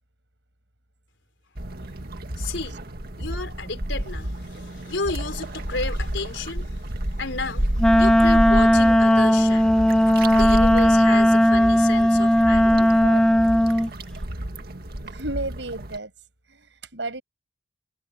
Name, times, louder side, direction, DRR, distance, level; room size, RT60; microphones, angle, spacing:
sound 1, 1.6-16.0, right 1 dB, 55° right, 1.9 m, -30 dB
voice 1, 2.4-2.8 3.2-6.9 7.1-9.7 10.4-12.9, left 3 dB, 85° left, 3.7 m, -32 dB
Wind instrument woodwind instrument, 7.8-13.9, equal, 5° left, 0.6 m, -17 dB
voice 2, 15.0-16.1 16.5-17.2, right 2 dB, 75° right, 7.5 m, -32 dB
head